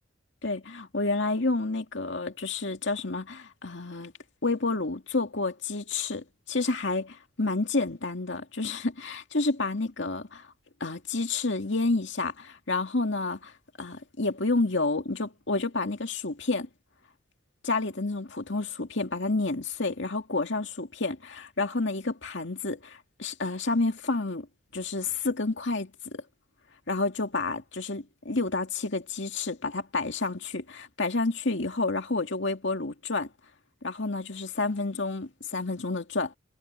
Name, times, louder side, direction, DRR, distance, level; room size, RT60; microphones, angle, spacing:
voice 1, 0.4-4.1 4.4-10.5 10.8-13.5 13.8-16.7 17.6-24.5 24.7-26.2 26.9-33.3 33.8-36.3, left 3 dB, 65° left, 2.4 m, -29 dB
head